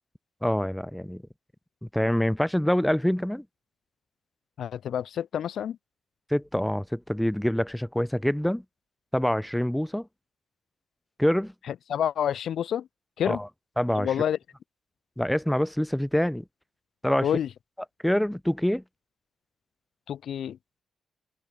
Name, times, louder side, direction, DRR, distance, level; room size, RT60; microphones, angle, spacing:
voice 1, 0.4-1.2 1.9-3.4 6.3-8.6 9.1-10.1 11.2-11.5 13.2-13.5 13.8-14.1 15.2-16.4 17.0-17.3 18.0-18.8, equal, 5° left, 6.0 m, -25 dB
voice 2, 4.6-5.8 11.7-12.9 13.2-13.4 14.0-14.4 17.2-17.5 20.1-20.6, left 9 dB, 70° left, 5.8 m, -28 dB
open air
cardioid pair, 85°, 0 cm